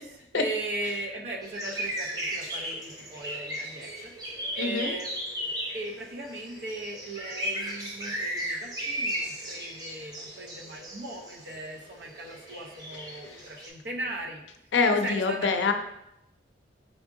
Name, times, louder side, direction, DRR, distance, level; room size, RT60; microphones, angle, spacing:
voice 1, 0.0-4.1 4.5-14.4 14.9-15.7, right 2 dB, 65° right, 2 dB, 0.7 m, -38 dB
sound 1, 1.4-13.7, equal, 20° right, 0.7 m, -36 dB
voice 2, 4.6-4.9 14.7-15.7, left 4 dB, 80° left, 6 dB, 0.4 m, -24 dB
5.0 x 3.5 x 2.5 m, 0.83 s
head